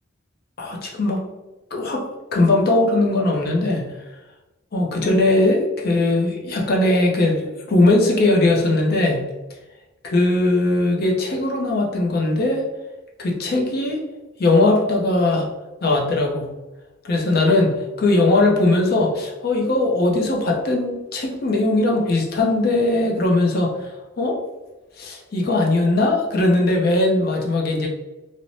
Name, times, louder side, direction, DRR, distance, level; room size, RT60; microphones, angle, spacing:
voice 1, 0.6-1.2 1.7-2.1 2.3-3.8 4.7-9.2 10.0-12.6 13.2-14.0 14.4-15.5 15.8-16.5 17.0-24.4 25.0-27.9, left 2 dB, 50° left, 0 dB, 0.5 m, -19 dB
2.6 x 2.0 x 3.0 m, 1.1 s
head